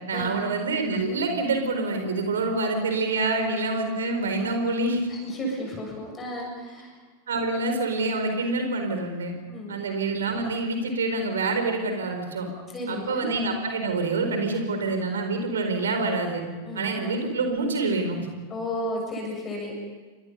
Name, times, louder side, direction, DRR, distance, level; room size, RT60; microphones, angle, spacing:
voice 1, 0.1-5.1 7.3-9.3 9.7-12.5 12.9-16.4 16.7-18.3, right 3 dB, 65° right, 5 dB, 4.6 m, -26 dB
voice 2, 5.1-6.9 9.5-9.8 12.7-13.3 16.7-16.9 18.5-19.7, left 1 dB, 20° left, 1 dB, 7.3 m, -33 dB
30.0 x 24.0 x 5.5 m, 1.4 s
figure-of-eight pair, 90°, 0 cm